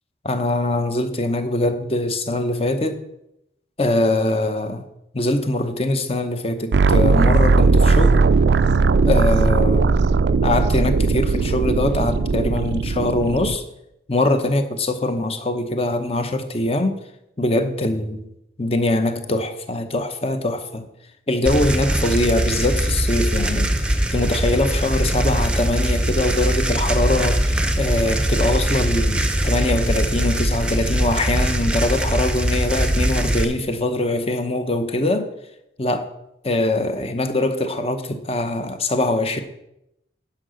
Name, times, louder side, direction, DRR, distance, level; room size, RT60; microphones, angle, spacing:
voice 1, 0.2-3.0 3.8-4.8 5.1-8.3 9.1-9.9 10.4-13.6 14.1-17.0 17.4-18.3 18.6-20.9 21.3-35.3 35.8-36.1 36.4-39.4, left 2 dB, 30° left, 0.9 m, -22 dB
sound 1, 6.7-13.6, right 4 dB, 65° right, 0.4 m, -17 dB
sound 2, 21.4-33.4, right 1 dB, 5° right, 0.7 m, -21 dB
10.5 x 5.7 x 6.4 m
head